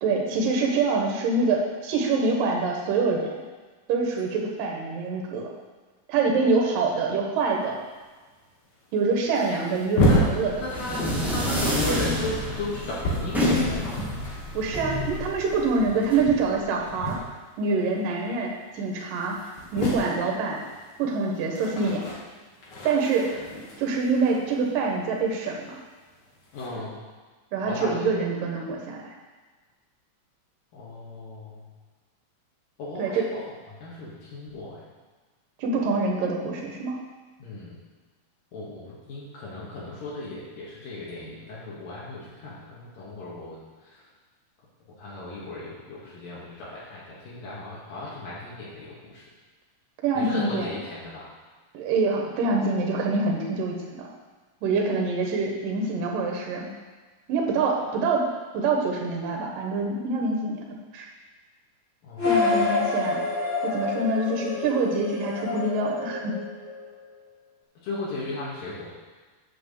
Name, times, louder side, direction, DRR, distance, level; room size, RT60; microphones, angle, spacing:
voice 1, 0.0-3.3 3.9-5.5 6.1-7.8 8.9-10.5 14.5-17.2 17.6-20.7 21.0-22.1 22.8-23.5 23.8-25.7 26.8-26.9 27.5-29.1 33.0-33.3 35.6-37.0 50.0-50.8 51.7-54.1 54.6-56.7 57.3-58.3 58.5-61.1 62.2-63.2 63.6-66.3, right 3 dB, 75° right, 0 dB, 2.8 m, -25 dB
sound 1, 7.5-7.7 7.9-8.0 8.8-8.9 9.2-11.1 11.4-17.7 17.9-18.3 18.7-18.8 19.0-25.3 26.1-26.7, equal, 50° left, 1.3 m, -31 dB
sound 2, 10.4-16.2, left 1 dB, ahead, 0.9 m, -28 dB
voice 2, 10.6-14.1 26.5-27.0 27.6-28.1 30.7-31.7 32.8-33.4 33.8-34.8 37.4-37.8 38.5-43.6 43.9-44.0 45.0-49.3 50.2-51.3 62.0-62.3 67.8-68.9, left 2 dB, 75° left, -7 dB, 3.5 m, -36 dB
sound 3, 62.2-67.0, left 3 dB, 25° left, 1.8 m, -28 dB
8.0 x 6.1 x 6.7 m, 1.3 s
omnidirectional pair, 4.0 m